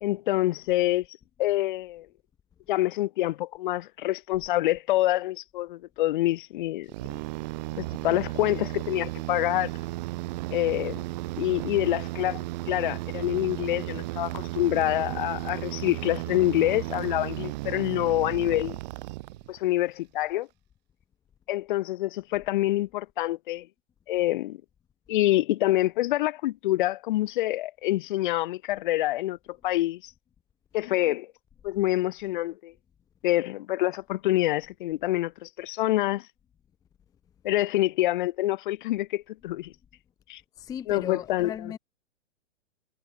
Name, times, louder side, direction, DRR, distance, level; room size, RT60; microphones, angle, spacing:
voice 1, 0.0-1.1 1.4-2.1 2.7-6.9 7.8-9.7 10.5-11.0 11.4-18.8 19.5-20.5 21.5-23.7 24.1-24.6 25.1-29.4 29.6-30.1 30.7-31.3 31.6-32.7 33.2-36.3 37.4-39.7 40.3-40.4 40.9-41.5, left 16 dB, 40° left, 1.1 m, -26 dB
sound 1, 6.9-19.7, right 20 dB, 35° right, 0.9 m, -34 dB
voice 2, 40.6-41.8, left 8 dB, 10° left, 0.7 m, -36 dB
figure-of-eight pair, 110°, 38 cm